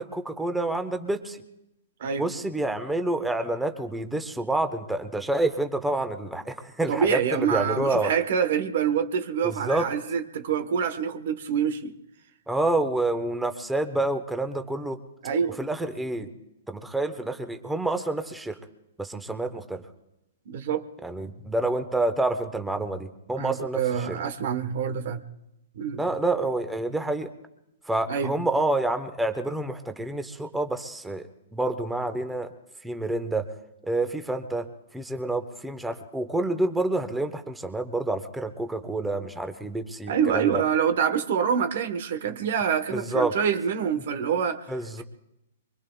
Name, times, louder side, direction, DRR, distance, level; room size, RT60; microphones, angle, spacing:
voice 1, 0.0-1.4 2.2-8.1 9.4-9.9 12.5-15.0 15.6-16.3 16.7-18.6 19.0-19.8 21.0-24.2 26.0-27.3 27.8-31.2 31.5-32.5 32.8-33.5 33.8-34.7 34.9-40.6 42.9-43.3 44.7-45.0, right 2 dB, 5° right, 7 dB, 1.0 m, -28 dB
voice 2, 6.9-11.9 15.2-15.6 20.5-20.9 23.4-25.2 25.7-26.0 28.1-28.3 40.1-44.7, right 7 dB, 60° right, 10 dB, 1.1 m, -26 dB
24.0 x 23.5 x 2.3 m, 0.87 s
hypercardioid pair, 125°, 0 cm